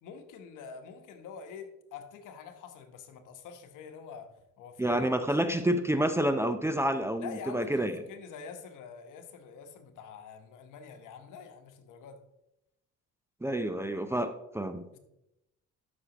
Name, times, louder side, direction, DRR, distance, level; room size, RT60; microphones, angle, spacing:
voice 1, 0.0-4.3 4.6-5.2 7.2-12.2 14.9-15.0, left 6 dB, 85° left, 7 dB, 1.1 m, -46 dB
voice 2, 4.8-8.0 13.4-14.8, right 1 dB, 10° right, 7 dB, 0.6 m, -29 dB
12.5 x 6.2 x 2.9 m, 0.87 s
cardioid pair, 90°, 30 cm